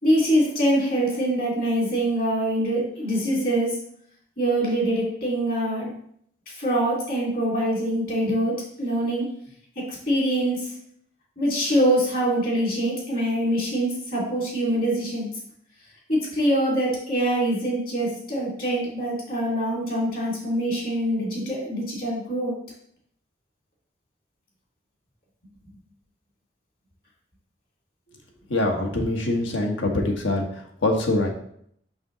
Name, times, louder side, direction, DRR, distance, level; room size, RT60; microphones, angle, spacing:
voice 1, 0.0-3.8 4.4-5.9 6.6-9.3 9.8-10.7 11.4-15.3 16.1-22.5, right 1 dB, 50° left, -4 dB, 2.7 m, -24 dB
voice 2, 28.5-30.5 30.8-31.3, left 2 dB, 85° left, 2 dB, 1.3 m, -23 dB
5.9 x 5.5 x 3.9 m, 0.66 s
head